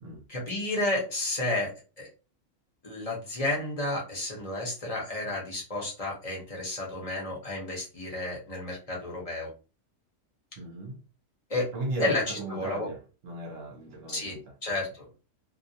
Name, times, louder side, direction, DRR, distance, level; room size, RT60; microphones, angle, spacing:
voice 1, 0.3-2.1 2.8-9.5 11.5-11.7 12.0-12.9 14.1-14.3 14.6-15.1, left 2 dB, 35° left, 0.7 m, -31 dB
voice 2, 10.6-11.0 11.7-14.5, right 2 dB, 60° right, 0.7 m, -37 dB
2.3 x 2.1 x 2.7 m
omnidirectional pair, 1.4 m